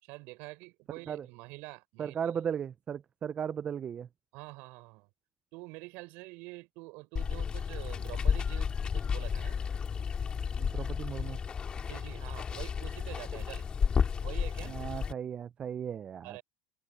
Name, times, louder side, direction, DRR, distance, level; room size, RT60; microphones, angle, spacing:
voice 1, 0.0-2.2 4.3-5.1 5.5-9.6 11.8-13.7 14.2-14.8 16.2-16.4, right 25 dB, 65° right, 5.7 m, -46 dB
voice 2, 2.0-4.1 10.6-11.4 14.6-16.4, right 8 dB, 35° right, 0.7 m, -36 dB
Water, 7.2-15.1, left 6 dB, 30° left, 3.4 m, -32 dB
hypercardioid pair, 90°, 3 cm